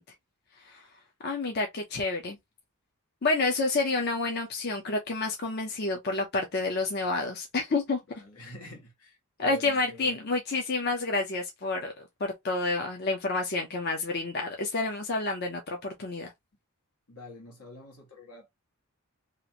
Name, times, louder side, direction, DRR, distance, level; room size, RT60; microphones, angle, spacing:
voice 1, 1.2-2.4 3.2-8.0 9.4-16.3, left 3 dB, 45° left, 0.6 m, -29 dB
voice 2, 8.1-10.3 17.1-18.5, left 2 dB, 85° left, 1.6 m, -47 dB
2.9 x 2.5 x 2.8 m
head